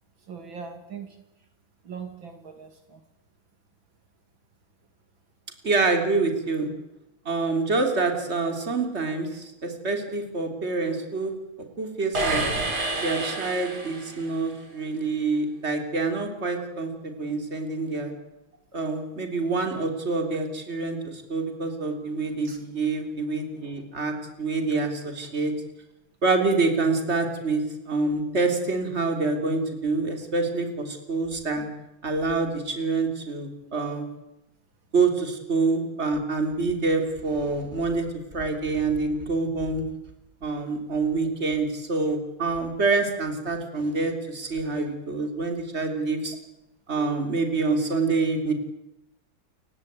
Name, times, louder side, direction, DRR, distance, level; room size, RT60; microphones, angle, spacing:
voice 1, 0.3-1.2 1.8-3.0 22.4-22.6, right 6 dB, 70° right, 6 dB, 3.0 m, -40 dB
voice 2, 5.6-6.7 7.3-11.3 11.8-12.4 13.0-18.1 18.7-25.5 26.2-31.7 32.0-34.1 34.9-38.1 38.3-39.8 40.4-46.4 46.9-48.5, right 3 dB, 30° right, 4 dB, 3.6 m, -26 dB
sound 1, 12.1-14.4, right 2 dB, 50° right, 3.7 m, -28 dB
28.5 x 16.0 x 9.5 m, 0.89 s
omnidirectional pair, 2.2 m